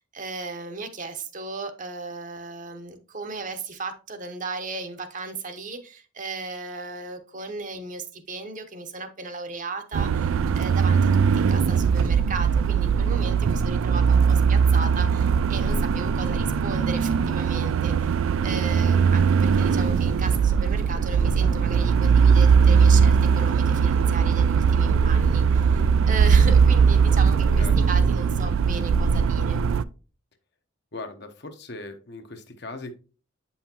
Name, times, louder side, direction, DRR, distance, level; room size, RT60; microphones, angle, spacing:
voice 1, 0.0-18.2 18.4-29.6, right 3 dB, 40° right, 8 dB, 0.8 m, -35 dB
sound 1, 9.9-29.8, right 6 dB, 80° right, 0.3 m, -20 dB
sound 2, 15.8-19.2, left 3 dB, 90° left, 0.8 m, -44 dB
sound 3, 18.4-28.4, left 1 dB, 15° left, 0.5 m, -43 dB
voice 2, 30.9-32.9, left 2 dB, 55° left, 7 dB, 0.8 m, -38 dB
8.1 x 5.6 x 2.9 m, 0.35 s
head